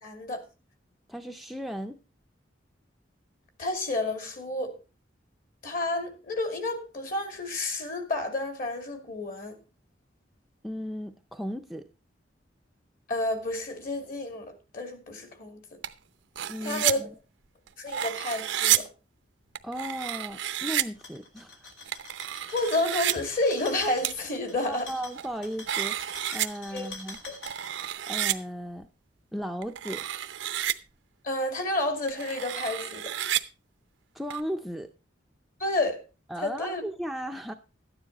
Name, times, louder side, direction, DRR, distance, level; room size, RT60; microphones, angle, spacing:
voice 1, 0.0-0.4 3.6-4.8 5.6-9.6 13.1-15.6 16.6-17.0 17.8-18.9 22.5-24.9 26.7-26.9 27.3-27.4 31.2-33.1 35.6-36.0 36.4-36.8, left 2 dB, 50° left, 2.5 m, -30 dB
voice 2, 1.1-2.0 10.6-11.9 16.5-17.1 19.6-21.7 24.6-26.0 26.3-27.2 28.1-28.9 29.3-30.1 34.1-34.9 36.3-37.5, equal, ahead, 0.5 m, -36 dB
sound 1, 15.8-15.9 16.4-16.9 17.7-18.8 19.6-20.8 21.8-23.1 24.0-24.1 24.9-25.4 25.7-26.5 27.1-28.4 29.6-30.7 32.1-33.4 34.3-34.4, right 12 dB, 85° right, 0.7 m, -30 dB
sound 2, 20.9-27.9, left 3 dB, 85° left, 2.7 m, -45 dB
13.0 x 9.7 x 4.1 m
head